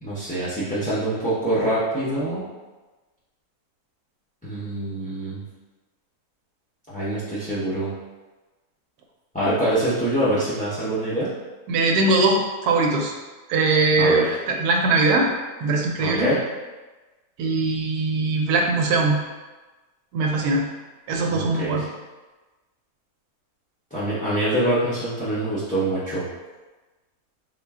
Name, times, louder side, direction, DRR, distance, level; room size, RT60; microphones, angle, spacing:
voice 1, 0.0-2.4 4.4-5.4 6.9-7.9 9.3-11.3 14.0-14.3 16.0-16.4 21.3-21.8 23.9-26.2, right 1 dB, 15° left, -11 dB, 0.3 m, -25 dB
voice 2, 11.7-13.1 13.5-15.3 15.6-16.3 17.4-19.2 20.1-20.7 21.1-21.8, right 3 dB, 85° right, 1 dB, 1.1 m, -21 dB
3.7 x 2.2 x 3.5 m, 1.2 s
omnidirectional pair, 1.6 m